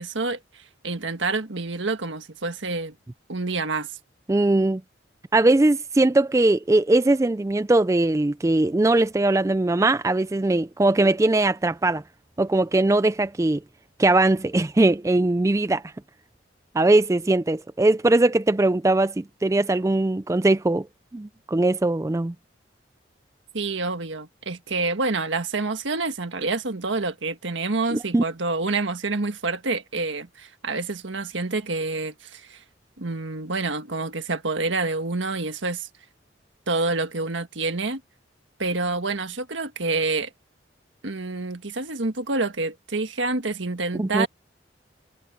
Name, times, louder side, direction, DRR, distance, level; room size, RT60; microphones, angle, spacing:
voice 1, 0.0-2.9 3.3-4.0 23.5-32.6 33.0-35.9 36.7-38.0 38.6-40.3 41.0-44.3, right 3 dB, 80° right, 1.6 m, -27 dB
voice 2, 4.3-4.8 5.3-12.0 12.4-13.6 14.0-15.8 16.7-20.9 21.1-22.3 27.9-28.2 43.9-44.3, right 2 dB, 15° right, 0.3 m, -20 dB
head